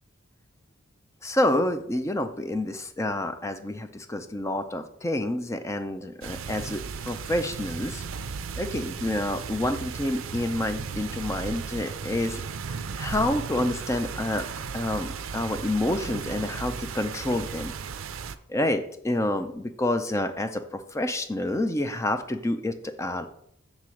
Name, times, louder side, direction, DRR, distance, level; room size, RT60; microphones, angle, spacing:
voice 1, 1.2-8.0 8.6-12.4 13.0-14.5 14.7-17.7 18.5-23.3, left 1 dB, 15° left, 8 dB, 0.4 m, -28 dB
sound 1, 6.2-18.3, right 5 dB, 75° right, 0.5 m, -35 dB
7.4 x 3.7 x 6.2 m, 0.70 s
head